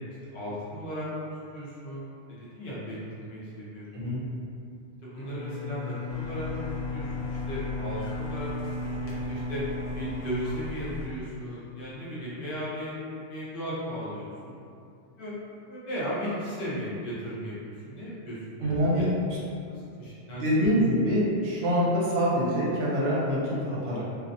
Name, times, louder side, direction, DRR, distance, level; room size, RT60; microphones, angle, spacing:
voice 1, 0.2-1.3 1.5-4.2 5.0-8.5 8.8-9.6 9.9-14.6 15.2-15.4 15.6-17.5 17.9-19.1 19.6-20.8, equal, 55° left, -8 dB, 0.8 m, -36 dB
Bowed string instrument, 5.1-11.2, left 3 dB, 10° left, 0.3 m, -35 dB
sound 1, 6.1-11.1, equal, 85° left, 1.0 m, -41 dB
voice 2, 18.6-19.0 20.3-24.0, equal, 65° right, -6 dB, 0.8 m, -25 dB
2.4 x 2.0 x 2.6 m, 2.5 s
omnidirectional pair, 1.2 m